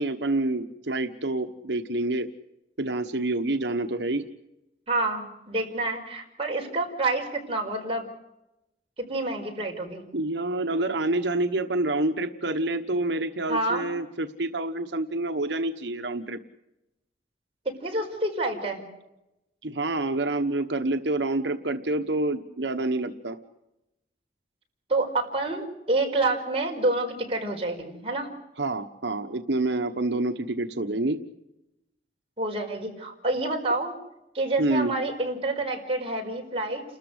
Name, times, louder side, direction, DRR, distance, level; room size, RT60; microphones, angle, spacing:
voice 1, 0.0-2.3 2.8-4.3 10.1-16.4 19.6-23.4 28.6-31.2 34.6-34.9, right 2 dB, 90° right, 7 dB, 1.3 m, -27 dB
voice 2, 4.9-8.1 9.0-10.0 13.5-13.9 17.6-18.8 24.9-28.3 32.4-33.9 34.3-36.8, right 2 dB, 35° right, 1 dB, 4.9 m, -28 dB
30.0 x 13.5 x 8.1 m, 0.92 s
head